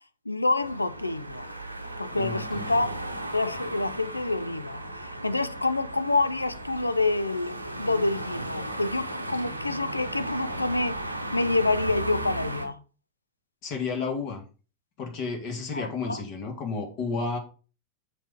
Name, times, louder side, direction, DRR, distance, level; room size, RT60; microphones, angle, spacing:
voice 1, 0.3-1.5 2.0-2.9 3.3-12.8 15.7-16.2, left 2 dB, 85° left, 0.5 m, -27 dB
sound 1, 0.6-12.7, right 1 dB, 85° right, 0.9 m, -36 dB
voice 2, 2.1-2.7 13.6-14.4 15.0-17.4, left 4 dB, 40° left, 2.0 m, -32 dB
7.2 x 5.9 x 3.6 m
figure-of-eight pair, 90°, 0 cm